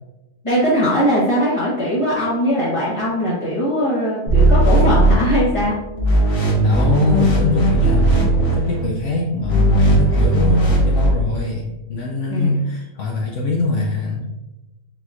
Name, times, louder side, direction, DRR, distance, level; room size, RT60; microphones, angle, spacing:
voice 1, 0.4-5.8 12.3-12.6, equal, 25° left, -9 dB, 0.8 m, -20 dB
sound 1, 4.3-5.7 6.0-8.9 9.4-11.1, right 1 dB, 50° left, 1.4 m, -16 dB
voice 2, 6.3-14.3, left 2 dB, 65° left, -1 dB, 0.7 m, -23 dB
4.2 x 4.1 x 2.5 m, 1.0 s
omnidirectional pair, 1.7 m